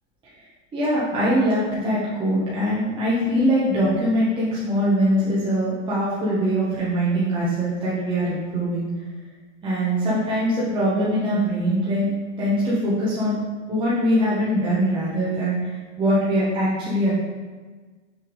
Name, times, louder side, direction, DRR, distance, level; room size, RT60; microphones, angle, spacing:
voice 1, 0.7-8.9 9.6-12.1 12.4-13.4 13.7-17.1, equal, 10° right, -9 dB, 0.9 m, -22 dB
6.1 x 3.5 x 4.7 m, 1.4 s
supercardioid pair, 160°, 39 cm